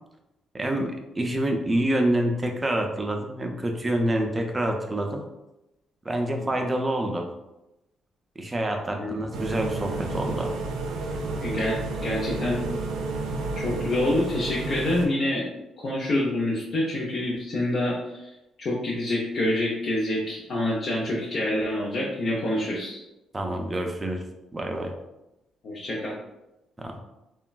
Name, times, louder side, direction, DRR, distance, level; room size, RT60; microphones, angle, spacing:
voice 1, 0.5-5.2 6.0-7.3 8.4-10.5 23.3-24.2 24.5-24.9 26.8-27.0, right 1 dB, 20° right, 3 dB, 0.4 m, -27 dB
sound 1, 9.3-15.1, right 3 dB, 90° right, 0.4 m, -31 dB
voice 2, 11.4-12.6 13.5-15.5 15.8-18.3 18.6-23.0 25.6-26.1, left 1 dB, 55° left, -5 dB, 0.6 m, -27 dB
3.0 x 2.2 x 2.3 m, 0.94 s
cardioid pair, 90°, 0 cm